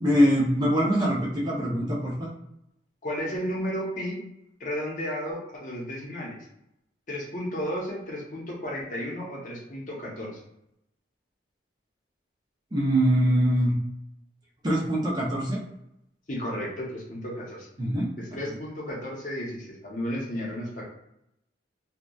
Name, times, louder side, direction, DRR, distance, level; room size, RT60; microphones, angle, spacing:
voice 1, 0.0-2.3 12.7-13.8 14.6-15.6 17.8-18.1, equal, 25° right, -4 dB, 0.5 m, -23 dB
voice 2, 3.0-4.2 4.6-6.4 7.1-10.4 16.3-17.7 18.2-20.8, equal, 45° left, -2 dB, 0.7 m, -33 dB
2.7 x 2.1 x 2.3 m, 0.80 s
head